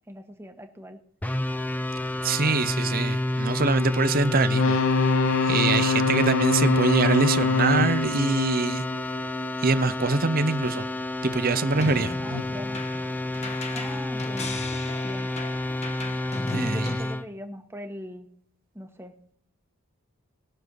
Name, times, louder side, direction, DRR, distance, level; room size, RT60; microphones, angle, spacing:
voice 1, 0.1-1.0 12.2-12.9 13.7-14.6 15.0-15.3 16.5-18.3 18.7-19.1, equal, 10° right, 1.2 m, -39 dB
sound 1, 1.2-17.2, left 1 dB, 5° left, 0.5 m, -29 dB
voice 2, 2.2-4.8 5.4-8.9 9.6-10.9 11.2-12.2 16.5-16.8, right 3 dB, 40° right, 0.7 m, -24 dB
sound 2, 4.4-9.5 12.3-12.4, left 4 dB, 65° left, 0.5 m, -24 dB
sound 3, 11.8-17.0, left 2 dB, 30° left, 1.2 m, -36 dB
20.5 x 6.9 x 4.0 m
head